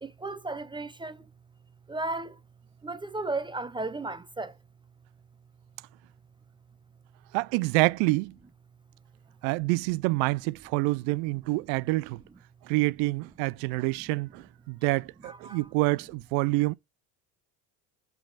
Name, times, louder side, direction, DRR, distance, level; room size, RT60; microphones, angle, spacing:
voice 1, 0.0-1.3 1.9-2.4 2.8-4.5 15.2-15.6, right 2 dB, 10° right, 0.5 m, -34 dB
voice 2, 7.3-8.3 9.4-12.2 12.6-16.8, right 22 dB, 70° right, 0.5 m, -27 dB
8.0 x 3.5 x 4.0 m
supercardioid pair, 95°, 41 cm